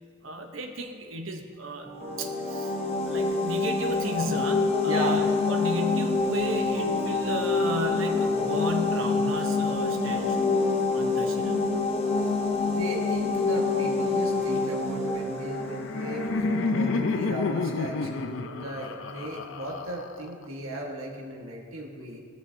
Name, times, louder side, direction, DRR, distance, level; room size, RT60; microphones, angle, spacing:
voice 1, 0.2-2.8 3.0-10.5 10.9-11.6, right 1 dB, 75° right, 4 dB, 0.9 m, -34 dB
sound 1, 1.8-17.1, right 1 dB, 30° right, 1.0 m, -41 dB
sound 2, 2.0-16.7, left 4 dB, 30° left, 0.7 m, -27 dB
voice 2, 4.9-5.2 12.2-12.3 12.6-16.3 16.7-22.2, right 1 dB, 90° right, -1 dB, 1.4 m, -36 dB
Laughter, 15.4-20.4, left 3 dB, 65° left, 0.5 m, -30 dB
17.0 x 6.6 x 2.7 m, 2.1 s
head